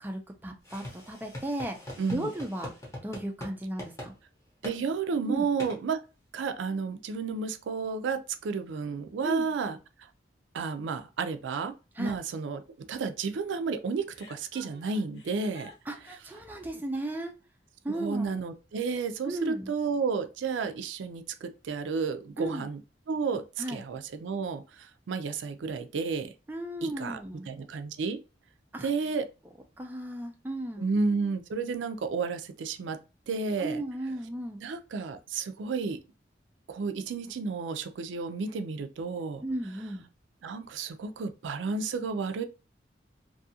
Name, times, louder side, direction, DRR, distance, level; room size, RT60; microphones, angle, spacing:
voice 1, 0.0-2.7 3.0-4.1 5.3-5.5 9.2-9.5 12.0-12.2 15.9-17.3 17.8-18.4 19.2-19.7 22.4-22.7 23.6-23.8 26.5-27.5 28.7-28.9 29.8-30.9 33.6-34.6 39.4-40.0, right 1 dB, 10° right, 0.4 m, -35 dB
sound 1, 0.6-3.5 3.8-4.1 4.6-4.8 5.6-5.8, left 1 dB, 15° left, 0.7 m, -42 dB
voice 2, 2.0-2.3 4.6-6.0 6.3-9.8 10.5-12.6 12.9-15.7 17.9-22.8 23.1-26.3 26.8-27.2 27.5-28.2 28.8-29.3 30.8-33.0 33.3-33.8 34.6-36.0 36.7-39.4 40.4-42.4, right 5 dB, 90° right, 0.4 m, -32 dB
Chuckle chortle, 14.1-16.4, left 1 dB, 75° left, 1.0 m, -51 dB
2.6 x 2.4 x 2.7 m
head